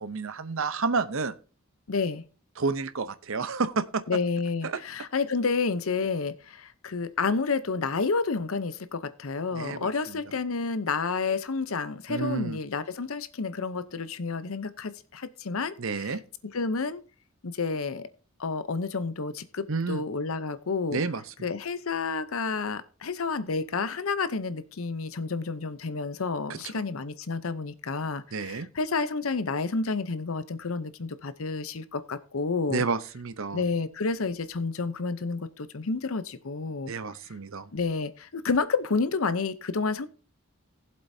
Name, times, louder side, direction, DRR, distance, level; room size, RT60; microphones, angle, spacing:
voice 1, 0.0-1.3 2.6-4.0 4.6-4.8 9.5-10.2 12.1-12.6 15.8-16.2 19.7-20.0 20.9-21.5 26.5-26.6 28.3-28.7 32.7-33.6 36.9-37.7, right 4 dB, 65° right, 0.7 m, -30 dB
voice 2, 1.9-2.2 4.1-16.1 16.5-17.0 17.4-18.1 18.4-21.0 21.4-32.8 33.5-36.9 37.7-40.1, left 4 dB, 70° left, 0.7 m, -30 dB
18.5 x 7.7 x 2.7 m
head